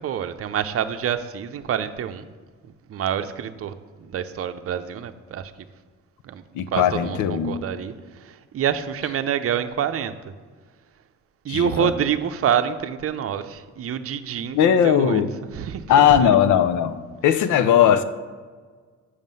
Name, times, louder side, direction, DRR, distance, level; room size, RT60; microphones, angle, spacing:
voice 1, 0.0-2.3 2.9-5.5 6.2-6.4 6.7-10.1 11.4-15.2 15.5-16.3, right 9 dB, 50° right, 9 dB, 0.6 m, -27 dB
voice 2, 6.5-7.5 11.5-11.9 14.5-15.3 15.9-18.0, left 9 dB, 80° left, 11 dB, 0.7 m, -18 dB
7.3 x 6.5 x 5.4 m, 1.5 s
cardioid pair, 90°, 30 cm